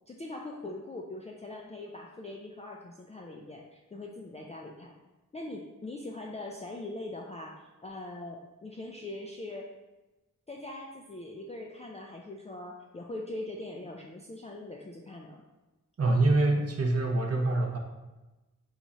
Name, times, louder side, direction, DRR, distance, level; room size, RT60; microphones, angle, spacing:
voice 1, 0.1-4.9 5.3-9.7 10.5-15.4, left 2 dB, 20° left, -1 dB, 0.3 m, -42 dB
voice 2, 16.0-17.8, right 2 dB, 50° right, 2 dB, 0.6 m, -25 dB
3.1 x 2.4 x 4.0 m, 1.1 s
cardioid pair, 45°, 33 cm